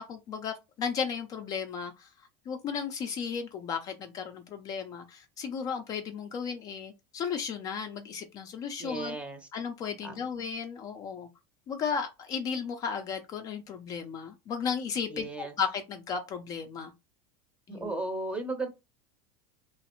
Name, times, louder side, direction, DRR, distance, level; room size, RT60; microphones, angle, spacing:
voice 1, 0.0-2.1 2.5-9.2 9.5-11.3 11.7-16.9 17.7-18.0, left 6 dB, 30° left, 0.4 m, -35 dB
voice 2, 8.8-9.5 10.0-10.2 15.1-15.5 17.7-18.7, right 2 dB, 10° right, 0.7 m, -35 dB
4.0 x 3.1 x 3.0 m
supercardioid pair, 160°, 12 cm